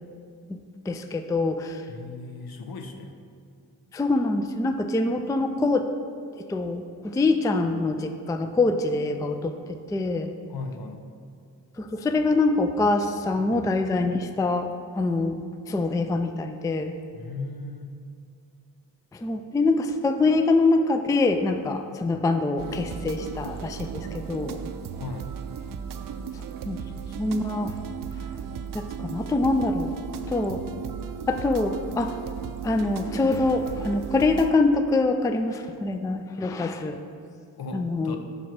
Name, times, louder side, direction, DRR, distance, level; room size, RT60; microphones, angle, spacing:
voice 1, 0.9-1.8 3.9-5.9 6.5-9.6 9.9-10.3 11.8-16.9 19.1-24.6 26.7-26.8 27.2-27.7 28.7-29.9 30.3-30.6 31.3-32.2 32.6-37.0 37.7-38.2, left 3 dB, 10° left, 7 dB, 0.3 m, -24 dB
voice 2, 1.9-3.1 10.5-11.1 17.1-18.0 25.0-25.3 37.6-38.2, left 3 dB, 55° left, 4 dB, 0.9 m, -37 dB
sound 1, 22.6-34.5, right 7 dB, 50° right, 0.5 m, -36 dB
5.2 x 4.5 x 5.9 m, 2.3 s
supercardioid pair, 45°, 43 cm